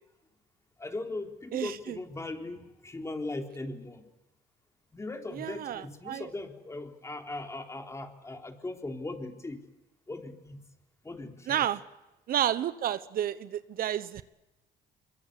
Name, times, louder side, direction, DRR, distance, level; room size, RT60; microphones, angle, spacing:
voice 1, 0.8-4.1 4.9-9.6 10.1-10.6 11.0-11.7, left 2 dB, 15° left, 4 dB, 3.9 m, -39 dB
voice 2, 1.5-2.0 5.4-6.3 11.5-11.8 12.3-14.2, right 11 dB, 60° right, 14 dB, 1.1 m, -31 dB
25.5 x 23.5 x 8.4 m, 0.98 s
cardioid pair, 110°, 17 cm